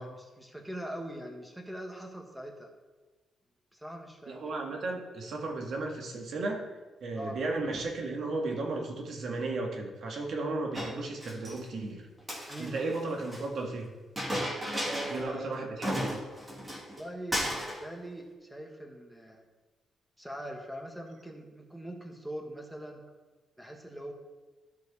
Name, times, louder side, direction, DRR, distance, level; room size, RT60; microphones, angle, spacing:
voice 1, 0.0-2.7 3.7-4.5 7.1-7.4 12.5-12.8 14.8-15.7 16.9-19.4 20.2-23.0 23.6-24.1, right 1 dB, 5° right, 2 dB, 1.5 m, -42 dB
voice 2, 4.3-6.7 7.0-12.0 12.6-13.9 15.1-16.2, right 2 dB, 60° right, 2 dB, 1.7 m, -34 dB
Chink clink, 10.7-11.6 12.2-13.4 14.2-15.3 15.5-15.6 15.8-17.0 17.3-17.8, equal, 20° right, 2.1 m, -34 dB
13.0 x 4.7 x 4.1 m, 1.2 s
cardioid pair, 105°, 0 cm